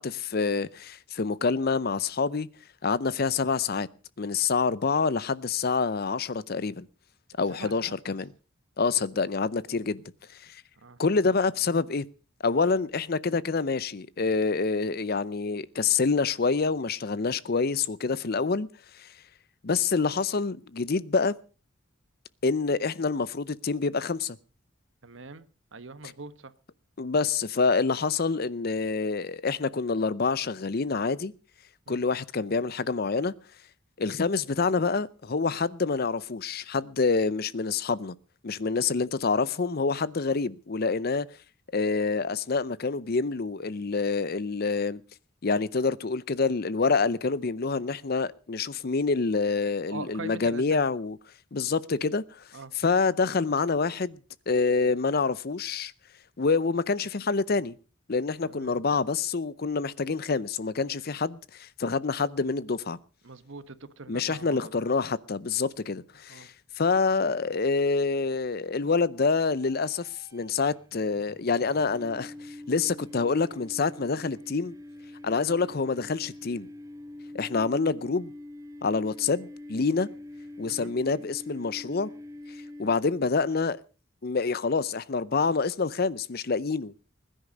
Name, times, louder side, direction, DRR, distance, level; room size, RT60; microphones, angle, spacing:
voice 1, 0.0-2.5 2.8-3.9 4.2-6.9 7.4-8.3 8.8-10.0 10.4-10.6 11.0-12.0 12.4-18.7 18.9-19.1 19.6-21.4 22.4-24.4 27.0-31.3 31.9-33.3 34.0-38.1 38.4-41.3 41.7-45.0 45.4-51.2 51.5-52.4 52.8-54.2 54.5-55.9 56.4-57.7 58.1-63.0 64.1-74.7 75.2-76.7 77.3-78.3 78.8-80.1 80.6-82.1 82.8-83.8 84.2-86.9, left 4 dB, 50° left, 0.6 m, -27 dB
voice 2, 7.5-7.9 10.8-11.0 25.0-26.5 31.9-32.0 49.9-50.8 52.5-52.7 58.4-58.7 63.2-64.7 66.3-66.5 80.7-80.9, right 3 dB, 70° right, 1.1 m, -42 dB
sound 1, 69.4-83.3, left 1 dB, 15° right, 0.9 m, -45 dB
20.5 x 10.0 x 5.2 m
head